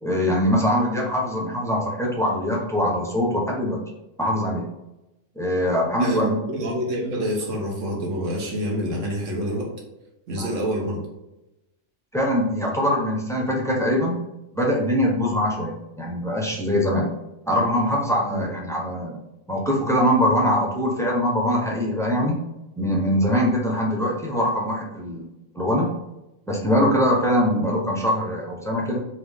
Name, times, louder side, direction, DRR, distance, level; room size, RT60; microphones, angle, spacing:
voice 1, 0.0-3.8 4.2-4.7 5.4-6.4 10.4-10.5 12.1-14.2 14.5-17.1 17.5-19.2 19.5-22.4 22.8-25.2 25.5-25.9 26.5-29.0, equal, 5° left, -2 dB, 0.5 m, -22 dB
voice 2, 6.0-9.7 10.3-11.0 18.3-18.4, equal, 75° right, -1 dB, 1.4 m, -27 dB
3.8 x 2.9 x 3.4 m, 0.95 s
omnidirectional pair, 1.3 m